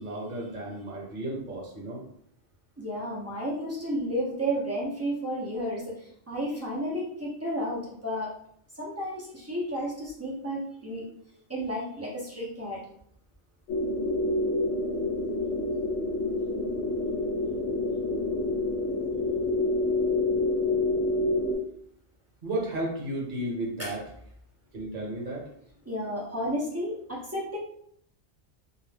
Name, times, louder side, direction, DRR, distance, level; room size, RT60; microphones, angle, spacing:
voice 1, 0.0-2.0 11.3-11.4 22.4-24.0 24.7-25.5, right 1 dB, 50° right, -3 dB, 1.0 m, -33 dB
voice 2, 2.8-8.3 8.7-11.1 11.5-12.8 23.8-23.9 25.9-27.6, equal, 25° right, -5 dB, 0.4 m, -32 dB
sound 1, 13.7-21.6, left 2 dB, 80° left, 0.9 m, -27 dB
2.4 x 2.0 x 3.2 m, 0.68 s
omnidirectional pair, 1.1 m